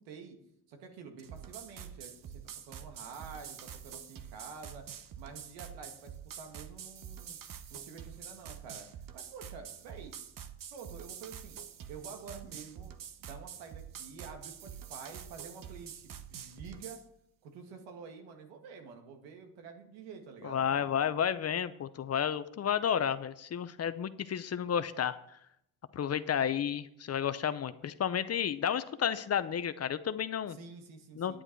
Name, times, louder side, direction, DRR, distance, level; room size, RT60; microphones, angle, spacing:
voice 1, 0.1-0.4 0.7-4.9 5.2-7.4 7.7-8.9 9.1-10.1 10.7-11.6 11.9-12.9 13.2-17.0 17.4-20.9 30.5-31.4, right 5 dB, 80° right, 5 dB, 2.0 m, -49 dB
sound 1, 1.2-17.0, right 9 dB, 50° right, 1.0 m, -46 dB
voice 2, 20.4-25.2 25.9-30.6 31.2-31.4, left 8 dB, 35° left, 13 dB, 0.7 m, -31 dB
10.0 x 8.8 x 4.6 m, 0.76 s
supercardioid pair, 80°, 44 cm